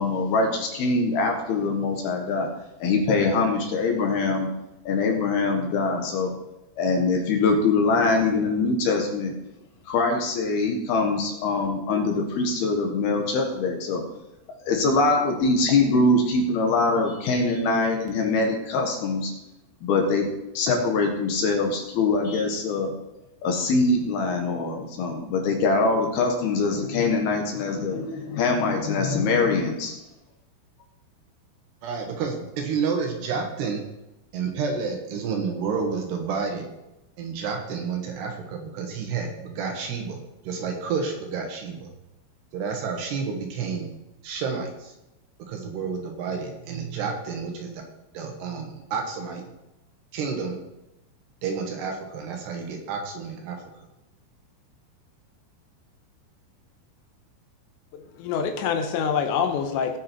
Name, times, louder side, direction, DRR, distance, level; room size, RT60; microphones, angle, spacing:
voice 1, 0.0-2.5 2.8-4.5 4.9-6.3 6.8-9.3 9.9-14.0 14.6-19.3 19.8-20.3 20.5-22.9 23.4-29.9, left 3 dB, 65° left, 2 dB, 2.9 m, -23 dB
voice 2, 31.8-33.8 34.3-36.7 37.2-40.2 40.4-41.9 42.5-43.9 44.2-44.9 45.5-47.8 48.1-49.4 50.1-50.6 51.4-53.6, right 5 dB, 70° right, 3 dB, 3.3 m, -30 dB
voice 3, 57.9-60.0, left 6 dB, 80° left, 6 dB, 3.0 m, -26 dB
18.0 x 6.3 x 4.5 m, 0.92 s
omnidirectional pair, 5.4 m